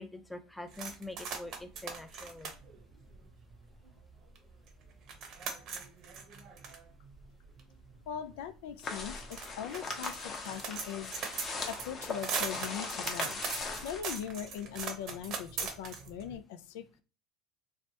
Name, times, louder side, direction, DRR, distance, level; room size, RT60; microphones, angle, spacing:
voice 1, 0.0-2.5, left 2 dB, 5° left, 6 dB, 0.5 m, -44 dB
sound 1, 0.7-3.9 4.3-4.4 4.7-16.3, right 5 dB, 50° right, 0.8 m, -40 dB
voice 2, 8.1-13.4 13.8-17.0, left 9 dB, 80° left, 10 dB, 0.3 m, -41 dB
sound 2, 8.8-14.0, left 4 dB, 35° left, 0.8 m, -39 dB
3.1 x 2.1 x 2.8 m, 0.35 s
supercardioid pair, 110°, 0 cm